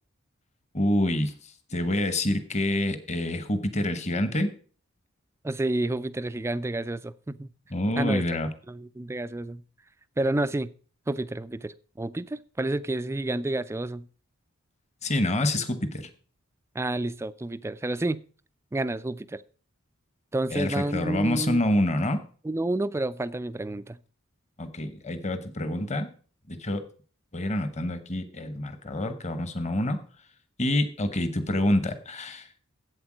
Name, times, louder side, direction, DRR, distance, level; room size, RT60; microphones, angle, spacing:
voice 1, 0.7-1.3 1.7-4.5 7.7-8.5 15.0-16.1 20.5-22.2 24.6-26.1 26.5-26.8 27.3-30.0 30.6-32.5, left 1 dB, 35° left, 1.1 m, -27 dB
voice 2, 5.4-7.5 8.0-8.2 8.7-9.6 10.2-10.7 11.1-14.1 16.7-18.2 18.7-19.4 20.3-21.6 22.4-24.0, right 2 dB, 15° right, 0.4 m, -30 dB
8.2 x 7.9 x 6.1 m
head